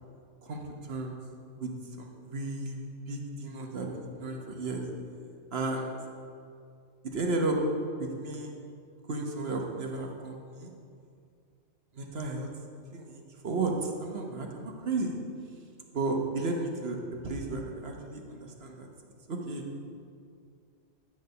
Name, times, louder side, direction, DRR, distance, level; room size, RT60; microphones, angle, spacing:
voice 1, 0.4-1.2 1.6-1.7 2.0-2.8 3.1-4.9 5.5-6.0 7.1-7.6 8.0-8.5 9.0-10.7 11.9-12.5 12.9-15.2 15.9-18.9 19.3-19.6, right 3 dB, 60° right, 1 dB, 1.2 m, -33 dB
10.5 x 3.6 x 6.6 m, 2.3 s
omnidirectional pair, 1.2 m